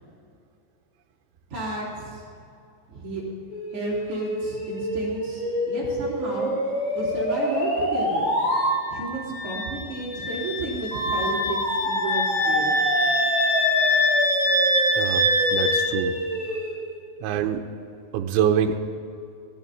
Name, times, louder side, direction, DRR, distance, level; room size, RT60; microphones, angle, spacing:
voice 1, 1.5-2.2 2.9-3.2 3.7-6.5 6.9-8.3 8.9-11.6 11.8-12.7, right 3 dB, 30° right, -6 dB, 3.6 m, -32 dB
sound 1, 3.5-8.7 10.9-16.8, equal, 45° left, 5.4 m, -27 dB
Wind instrument woodwind instrument, 8.5-15.8, left 1 dB, 90° left, 4.5 m, -24 dB
voice 2, 15.0-16.2 17.2-17.6 18.1-18.8, right 9 dB, 85° right, 5 dB, 2.9 m, -25 dB
16.0 x 12.5 x 4.2 m, 2.5 s
omnidirectional pair, 5.6 m